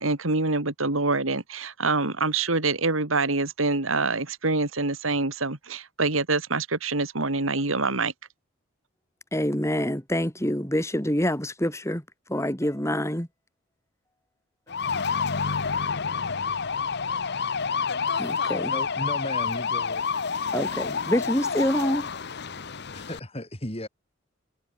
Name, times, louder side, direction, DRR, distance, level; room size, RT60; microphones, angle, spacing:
voice 1, 0.0-8.1, right 3 dB, 85° right, 3.1 m, -25 dB
voice 2, 9.3-12.0 12.3-13.3 18.2-18.7 20.5-22.1, equal, 15° left, 4.3 m, -26 dB
sound 1, 14.7-23.2, left 5 dB, 55° left, 1.0 m, -28 dB
voice 3, 18.7-20.0 22.9-23.9, left 1 dB, 30° left, 6.7 m, -35 dB
head